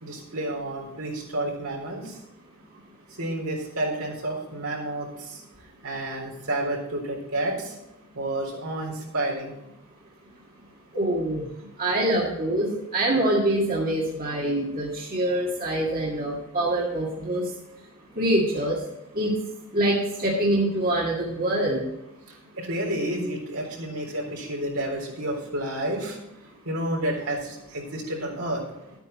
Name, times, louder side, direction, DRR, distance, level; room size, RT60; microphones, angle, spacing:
voice 1, 0.0-2.2 3.2-5.4 5.8-7.8 8.1-9.5 22.3-26.2 26.6-28.6, right 1 dB, 75° right, -1 dB, 3.9 m, -30 dB
voice 2, 10.9-17.5 18.2-18.8 19.1-19.4 19.7-21.9, right 1 dB, 40° right, -4 dB, 2.0 m, -25 dB
12.5 x 9.1 x 4.2 m, 0.89 s
head